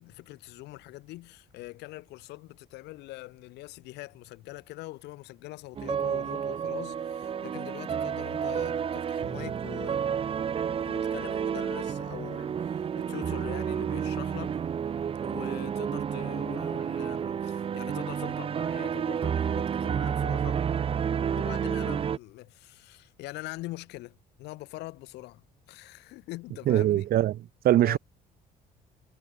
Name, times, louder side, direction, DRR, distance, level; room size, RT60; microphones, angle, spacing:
voice 1, 0.0-10.1 10.8-14.6 15.2-20.6 21.3-27.1 27.8-28.0, left 19 dB, 85° left, 3.2 m, -43 dB
sound 1, 5.8-22.2, right 8 dB, 35° right, 0.6 m, -30 dB
voice 2, 26.7-27.3 27.6-28.0, right 13 dB, 60° right, 1.0 m, -22 dB
cardioid pair, 110°, 17 cm